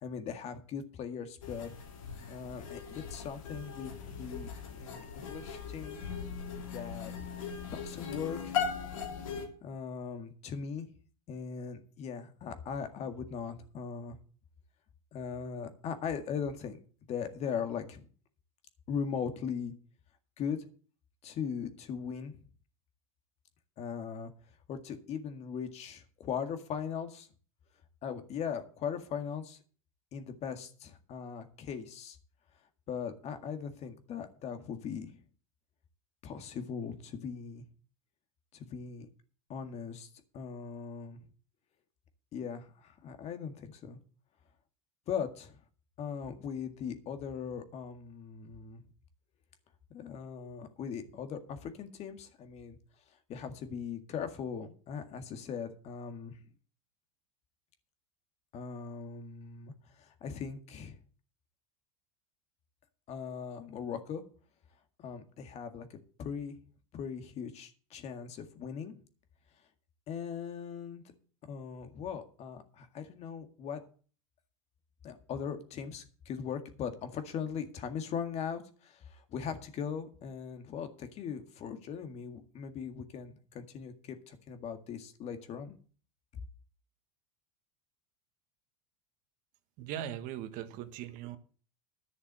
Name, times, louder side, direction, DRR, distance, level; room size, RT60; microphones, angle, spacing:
voice 1, 0.0-1.7 2.3-6.0 6.7-7.2 7.7-8.6 9.6-10.9 11.3-14.2 15.1-16.8 17.1-18.1 18.9-19.7 20.4-20.6 21.2-22.4 23.8-24.3 24.7-27.3 28.0-29.6 30.1-32.2 32.9-35.2 36.2-37.6 38.5-39.1 39.5-40.1 40.3-41.2 42.3-44.0 45.1-45.6 46.0-48.8 49.9-52.8 53.1-56.4 58.5-61.0 63.1-64.2 65.0-66.6 66.9-68.9 70.1-71.0 71.4-73.8 75.0-85.8, left 7 dB, 40° left, 8 dB, 1.9 m, -39 dB
sound 1, 1.4-9.5, left 6 dB, 85° left, 3.1 m, -39 dB
voice 2, 89.8-91.4, right 11 dB, 55° right, 9 dB, 1.5 m, -39 dB
11.5 x 6.6 x 7.5 m, 0.41 s
supercardioid pair, 120°, 17 cm